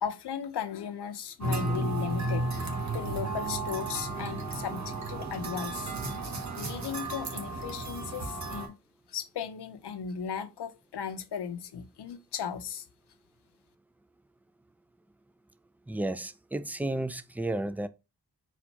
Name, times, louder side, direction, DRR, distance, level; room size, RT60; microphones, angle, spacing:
voice 1, 0.0-2.5 2.9-5.9 6.5-8.7 9.1-12.8, left 7 dB, 70° left, 0.8 m, -36 dB
sound 1, 1.4-8.7, right 2 dB, 40° right, 1.3 m, -33 dB
voice 2, 15.9-17.9, right 1 dB, 5° right, 0.3 m, -32 dB
4.2 x 2.5 x 4.4 m
cardioid pair, 55°, 42 cm